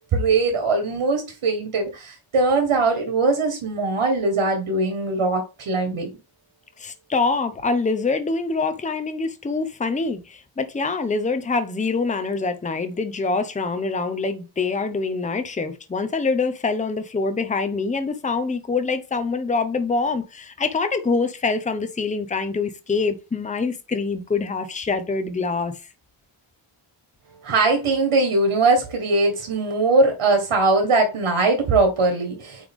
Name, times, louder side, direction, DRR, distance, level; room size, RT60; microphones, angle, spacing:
voice 1, 0.1-6.1 27.4-32.7, right 3 dB, 80° right, 1.6 m, -21 dB
voice 2, 6.8-25.7, left 4 dB, 15° left, 0.6 m, -25 dB
8.8 x 3.3 x 3.6 m
wide cardioid pair, 175°, 49 cm